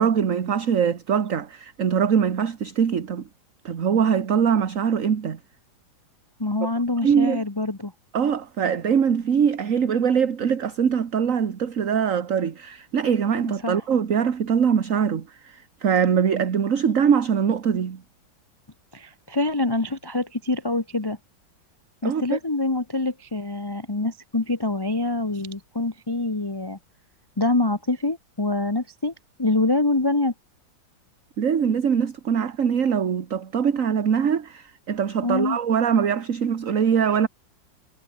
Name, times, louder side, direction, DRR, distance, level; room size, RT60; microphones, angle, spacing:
voice 1, 0.0-3.2 3.7-5.4 6.6-6.7 7.0-7.4 8.1-18.0 22.0-22.4 31.4-37.3, right 7 dB, 45° right, 1.6 m, -22 dB
voice 2, 6.4-7.9 13.6-13.8 18.9-21.2 22.0-26.8 27.4-29.1 29.4-30.3 35.2-35.6, left 2 dB, 15° left, 1.1 m, -25 dB
omnidirectional pair, 2.1 m